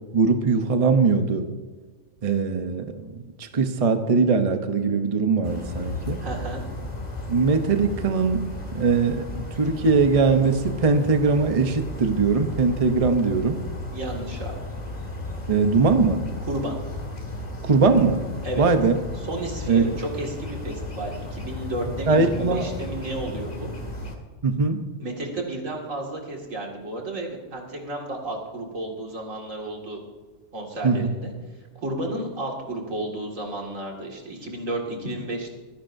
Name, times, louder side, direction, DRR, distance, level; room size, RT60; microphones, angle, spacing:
voice 1, 0.1-1.5 2.2-6.2 7.3-8.4 8.7-13.6 15.5-16.2 17.6-18.2 18.6-19.0 19.7-19.9 22.1-22.7 24.4-24.8 30.8-31.1, right 4 dB, 35° right, 7 dB, 0.8 m, -21 dB
sound 1, 5.4-24.2, left 2 dB, 30° left, 1.9 m, -35 dB
voice 2, 6.2-6.6 13.9-14.6 16.4-16.7 18.4-18.7 19.2-23.7 25.0-30.0 30.5-31.3 31.8-35.5, right 1 dB, 75° right, 0 dB, 2.6 m, -32 dB
23.5 x 10.5 x 2.7 m, 1.4 s
omnidirectional pair, 1.3 m